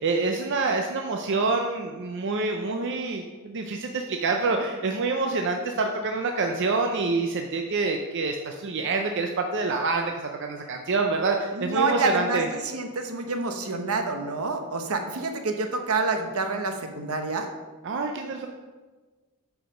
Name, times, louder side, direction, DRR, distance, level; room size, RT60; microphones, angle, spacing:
voice 1, 0.0-12.5 17.8-18.5, right 3 dB, 55° right, 3 dB, 0.5 m, -27 dB
voice 2, 11.5-17.5, right 3 dB, 75° right, 5 dB, 0.9 m, -28 dB
8.9 x 4.9 x 5.1 m, 1.3 s
head